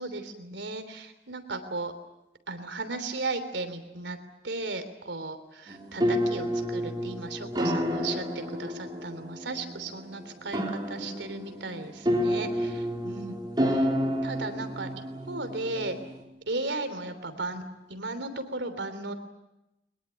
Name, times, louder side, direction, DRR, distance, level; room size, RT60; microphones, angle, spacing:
voice 1, 0.0-1.9 2.5-4.2 4.4-13.9 14.2-16.0 16.5-17.6 17.9-19.1, right 2 dB, 75° right, 10 dB, 3.2 m, -36 dB
sound 1, 5.7-16.2, equal, 25° right, 3.9 m, -30 dB
22.5 x 21.5 x 9.8 m, 0.94 s
head